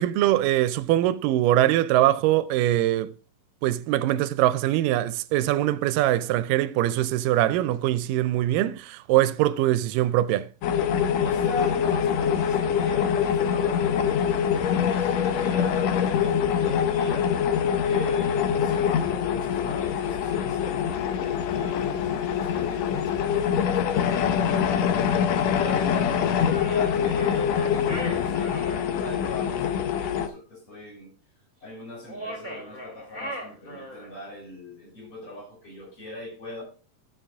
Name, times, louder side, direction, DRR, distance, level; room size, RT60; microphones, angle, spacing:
voice 1, 0.0-3.1 3.6-10.5, right 14 dB, 80° right, 2.1 m, -22 dB
sound 1, 10.6-30.3, left 8 dB, 80° left, 1.5 m, -24 dB
voice 2, 11.2-17.3 17.8-25.0 25.5-31.1 31.6-36.6, left 2 dB, 40° left, 3.6 m, -39 dB
sound 2, 26.4-28.8 32.0-34.2, equal, 25° left, 1.1 m, -38 dB
13.5 x 5.8 x 3.5 m
omnidirectional pair, 4.1 m